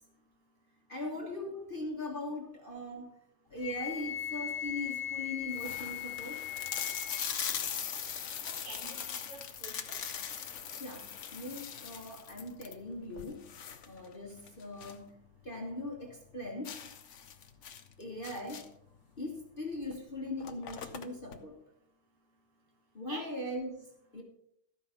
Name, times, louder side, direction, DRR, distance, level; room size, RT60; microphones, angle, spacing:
voice 1, 0.9-3.2 3.5-6.4 10.8-13.5 13.9-16.9 18.0-18.7 19.2-21.6 22.9-24.2, left 1 dB, 30° left, 0 dB, 1.2 m, -40 dB
Wind instrument woodwind instrument, 3.6-7.3, left 10 dB, 60° left, 1.4 m, -38 dB
sound 1, 3.7-4.2 4.8-4.9 5.1-5.2 5.5-15.1 15.4-15.5 15.9-16.0 16.6-18.9 19.8-20.0 20.2-21.4, left 8 dB, 80° left, 0.6 m, -40 dB
voice 2, 8.4-10.0 23.1-23.3, right 2 dB, 75° right, 2 dB, 2.9 m, -47 dB
13.5 x 5.5 x 5.6 m, 0.74 s
omnidirectional pair, 2.4 m